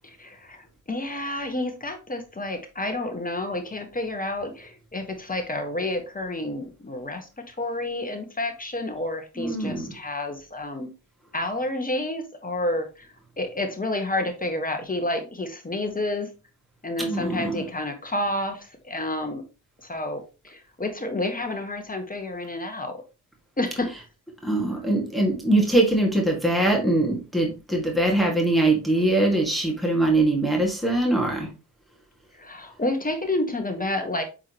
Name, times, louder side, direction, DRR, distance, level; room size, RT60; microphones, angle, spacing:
voice 1, 0.0-10.9 11.3-13.1 13.4-16.3 16.8-19.4 19.8-23.0 23.6-23.9 32.4-34.2, left 1 dB, 20° left, 5 dB, 1.6 m, -30 dB
voice 2, 9.4-9.9 17.0-17.6 24.4-31.5, right 2 dB, ahead, 0 dB, 2.0 m, -22 dB
8.4 x 3.9 x 3.0 m, 0.31 s
supercardioid pair, 65°, 41 cm